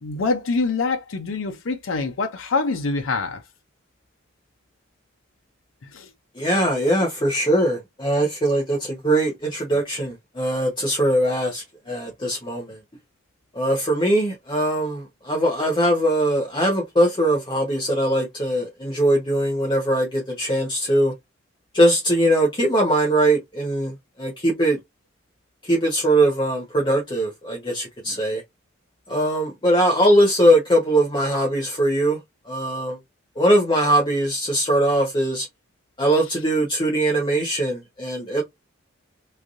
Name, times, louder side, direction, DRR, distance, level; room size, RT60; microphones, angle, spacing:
voice 1, 0.0-3.4 5.8-6.1, left 3 dB, 90° left, 0.6 m, -25 dB
voice 2, 6.4-12.8 13.5-21.1 21.7-24.8 25.6-28.4 29.1-32.2 32.5-33.0 33.4-35.5 36.0-38.4, right 1 dB, 25° left, 0.9 m, -21 dB
3.2 x 2.6 x 2.5 m
head